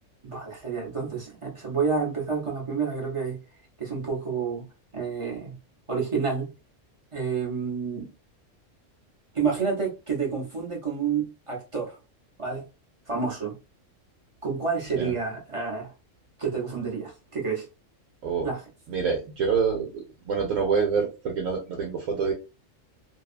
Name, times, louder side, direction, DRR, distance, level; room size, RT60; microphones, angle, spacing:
voice 1, 0.2-3.4 3.8-4.6 4.9-5.5 5.9-6.5 7.1-8.1 9.3-11.9 12.4-12.7 13.1-13.5 14.4-15.9 16.4-17.7 18.4-18.6, right 5 dB, 30° right, 0.7 m, -29 dB
voice 2, 18.9-22.3, right 6 dB, 90° right, 1.1 m, -26 dB
2.7 x 2.2 x 2.4 m
omnidirectional pair, 1.3 m